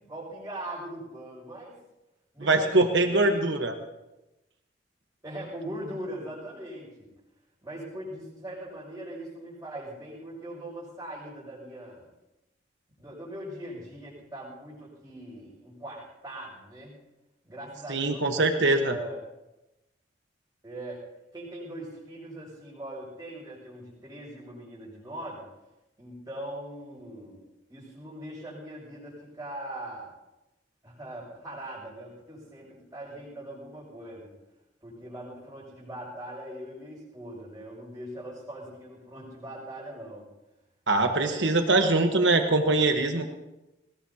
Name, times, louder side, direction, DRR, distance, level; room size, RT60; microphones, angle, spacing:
voice 1, 0.1-1.7 2.3-3.5 5.2-7.1 7.6-12.1 13.0-17.0 17.4-19.2 20.6-21.0 21.3-25.4 26.0-27.4 27.7-30.1 30.8-34.3 34.8-40.3 41.0-42.9, right 1 dB, 20° right, -6 dB, 6.1 m, -41 dB
voice 2, 2.4-3.7 17.9-19.0 40.9-43.3, right 2 dB, 75° right, 5 dB, 1.3 m, -23 dB
21.5 x 19.0 x 2.9 m, 0.97 s
head